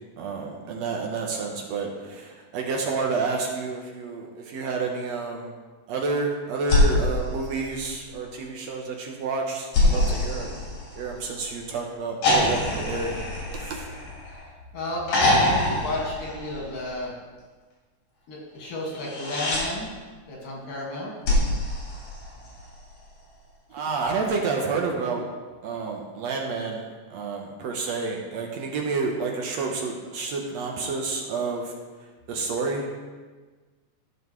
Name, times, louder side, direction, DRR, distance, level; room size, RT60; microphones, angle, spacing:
voice 1, 0.2-5.5 5.9-10.5 10.9-13.2 13.5-13.9 23.7-25.3 25.6-33.1, right 4 dB, 70° right, 1 dB, 1.9 m, -29 dB
sound 1, 6.6-8.2 9.7-11.4 12.2-14.5 15.1-16.9 18.9-19.7 21.2-22.7 24.3-24.4, left 1 dB, 65° left, 3.9 m, -25 dB
voice 2, 14.7-17.2 18.3-19.9 20.3-21.1, left 1 dB, 90° left, -3 dB, 3.4 m, -32 dB
14.5 x 5.7 x 3.1 m, 1.4 s
omnidirectional pair, 3.6 m